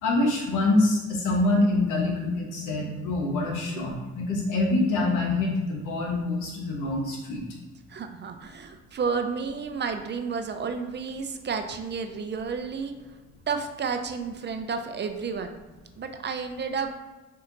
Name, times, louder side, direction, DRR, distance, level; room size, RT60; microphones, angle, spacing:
voice 1, 0.0-7.4, left 2 dB, 90° left, 0 dB, 1.1 m, -25 dB
voice 2, 7.9-13.2 13.5-15.6 16.0-16.9, right 5 dB, 35° right, 6 dB, 0.5 m, -31 dB
4.3 x 2.8 x 3.8 m, 1.2 s
cardioid pair, 90°, 30 cm